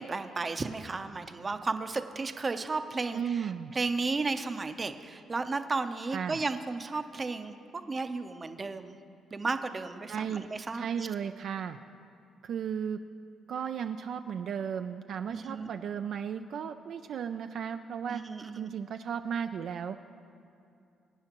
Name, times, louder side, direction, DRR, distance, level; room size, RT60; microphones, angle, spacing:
voice 1, 0.0-7.6 7.9-9.0 9.3-11.1 15.3-15.7 18.1-18.7, right 3 dB, 30° right, 8 dB, 0.6 m, -34 dB
voice 2, 3.1-3.7 6.1-6.4 10.1-10.5 10.7-11.8 12.4-13.0 13.5-18.2 18.6-20.0, right 7 dB, 65° right, 7 dB, 0.3 m, -35 dB
22.5 x 9.5 x 3.0 m, 2.5 s
cardioid pair, 90°, 0 cm